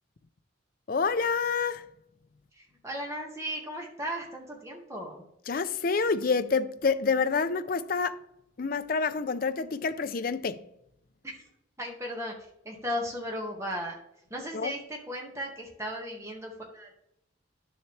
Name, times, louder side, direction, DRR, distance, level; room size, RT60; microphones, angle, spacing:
voice 1, 0.9-1.9 5.5-8.2 8.6-10.6 14.5-14.7, left 5 dB, 45° left, 0.4 m, -28 dB
voice 2, 2.5-5.2 11.2-11.4 11.8-12.3 12.6-14.0 14.3-16.9, equal, 15° right, 1.7 m, -36 dB
10.5 x 7.1 x 3.3 m
head